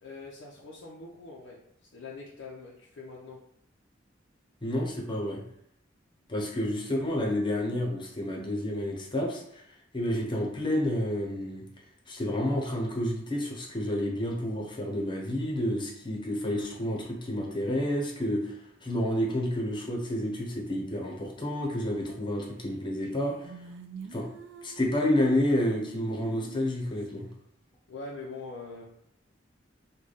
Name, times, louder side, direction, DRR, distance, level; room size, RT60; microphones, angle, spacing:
voice 1, 0.0-3.4 27.9-29.0, left 3 dB, 90° left, -3 dB, 0.5 m, -43 dB
voice 2, 4.6-5.4 6.3-9.6 9.9-11.6 12.1-23.5 24.1-24.3 24.6-27.3, left 1 dB, 25° left, -1 dB, 0.7 m, -30 dB
sound 1, 22.7-22.8 23.1-27.1, right 5 dB, 85° right, 0.3 m, -47 dB
3.2 x 2.2 x 3.9 m, 0.71 s
head